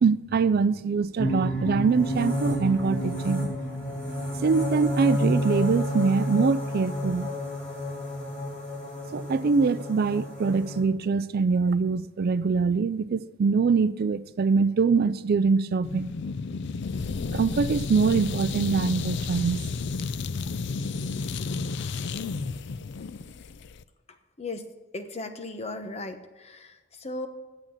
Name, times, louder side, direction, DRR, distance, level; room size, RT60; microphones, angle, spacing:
voice 1, 0.0-3.5 4.4-7.3 9.1-16.1 17.2-19.6, right 5 dB, 50° right, 0.4 m, -24 dB
sound 1, 1.2-10.8, equal, 5° left, 3.1 m, -30 dB
sound 2, 15.8-23.8, left 4 dB, 60° left, 0.4 m, -32 dB
voice 2, 24.9-27.3, left 2 dB, 35° left, 1.0 m, -36 dB
8.8 x 7.5 x 8.8 m
head